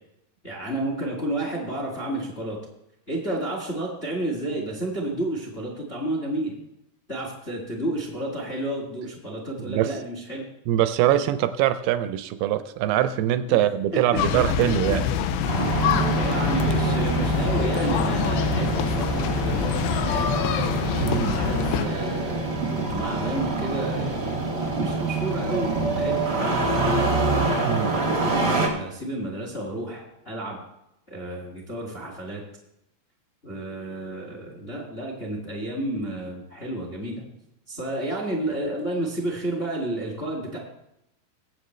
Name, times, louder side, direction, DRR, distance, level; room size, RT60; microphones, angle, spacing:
voice 1, 0.4-2.6 3.1-6.5 7.1-10.4 13.5-13.7 13.9-15.0 15.6-15.7 16.2-20.4 21.2-24.4 24.8-27.1 27.9-30.6 31.1-32.4 33.4-37.2 37.7-40.6, right 1 dB, 25° left, -1 dB, 1.3 m, -31 dB
voice 2, 9.6-9.9 10.7-15.1 21.0-21.3 27.7-28.0, right 12 dB, 80° right, 11 dB, 2.4 m, -23 dB
sound 1, 14.2-21.9, left 8 dB, 85° left, 2.8 m, -25 dB
Engine starting, 15.5-28.7, right 3 dB, 45° right, 0.7 m, -26 dB
22.0 x 7.8 x 3.2 m, 0.83 s
omnidirectional pair, 4.9 m